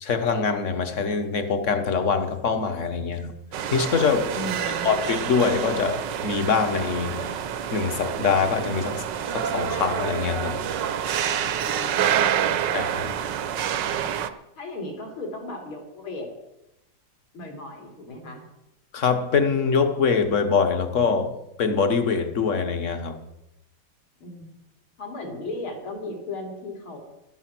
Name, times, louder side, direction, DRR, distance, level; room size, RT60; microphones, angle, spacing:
voice 1, 0.0-3.4 3.7-4.3 4.8-7.4 7.7-9.0 9.3-10.6 12.7-13.1 18.9-23.2, left 5 dB, 40° left, 1.4 m, -24 dB
sound 1, 3.5-14.3, right 9 dB, 65° right, 1.3 m, -27 dB
voice 2, 4.3-4.9 11.6-13.4 14.6-16.3 17.3-18.4 24.2-24.5 25.0-27.0, left 2 dB, 70° left, 4.1 m, -36 dB
14.0 x 12.5 x 6.0 m
omnidirectional pair, 2.3 m